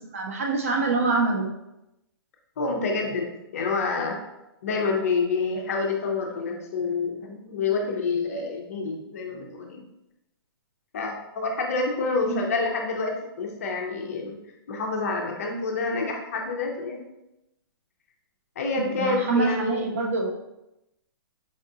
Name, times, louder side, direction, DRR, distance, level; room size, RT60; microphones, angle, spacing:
voice 1, 0.1-1.5 12.3-12.4 18.8-20.3, right 4 dB, 35° right, 2 dB, 0.3 m, -25 dB
voice 2, 2.6-3.3 3.5-4.2 4.6-9.8 10.9-14.4 14.7-17.0 18.6-19.8, left 4 dB, 35° left, 1 dB, 0.5 m, -28 dB
4.6 x 2.3 x 2.7 m, 0.89 s
hypercardioid pair, 175°, 13 cm